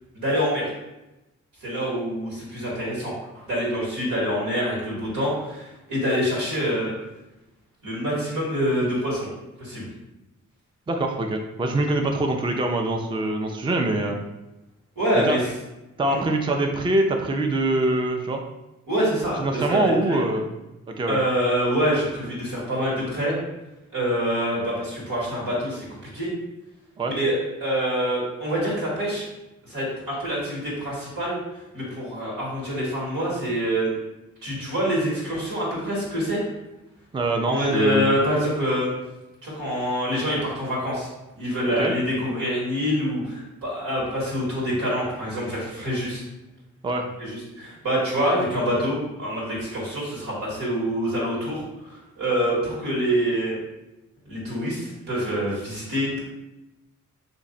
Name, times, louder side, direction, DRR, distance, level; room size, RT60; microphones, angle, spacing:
voice 1, 0.1-0.7 1.6-6.9 7.8-9.3 9.6-9.8 15.0-15.4 16.1-16.2 18.9-20.2 21.1-23.3 23.9-25.8 26.1-26.3 27.0-29.2 29.6-31.4 31.7-33.9 34.4-36.4 37.5-38.9 39.4-41.1 41.4-46.2 47.2-51.6 51.9-53.6 54.2-56.2, equal, 85° right, -5 dB, 1.5 m, -26 dB
voice 2, 10.9-14.2 15.1-15.4 16.0-18.4 19.4-20.5 20.9-21.2 27.0-27.1 37.1-38.1 41.8-41.9 46.8-47.1, right 2 dB, 15° right, 3 dB, 0.4 m, -24 dB
3.0 x 2.5 x 3.7 m, 0.98 s
supercardioid pair, 45°, 33 cm